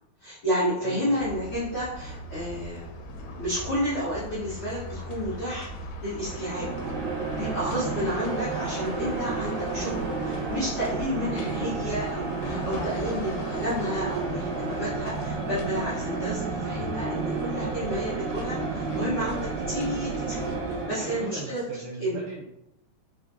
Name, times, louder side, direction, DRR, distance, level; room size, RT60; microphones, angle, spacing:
voice 1, 0.2-2.9 3.4-5.7 6.0-6.7 7.4-9.9 10.2-20.5 20.9-21.6 22.0-22.2, equal, 75° left, -9 dB, 1.2 m, -31 dB
voice 2, 0.8-1.2 7.7-8.1 14.3-14.6 21.0-22.6, right 3 dB, 85° right, -4 dB, 1.7 m, -39 dB
sound 1, 1.2-20.8, left 1 dB, 90° left, 2.6 m, -39 dB
sound 2, 6.2-21.5, right 4 dB, 70° right, 2.4 m, -32 dB
5.4 x 3.6 x 2.6 m, 0.85 s
omnidirectional pair, 4.4 m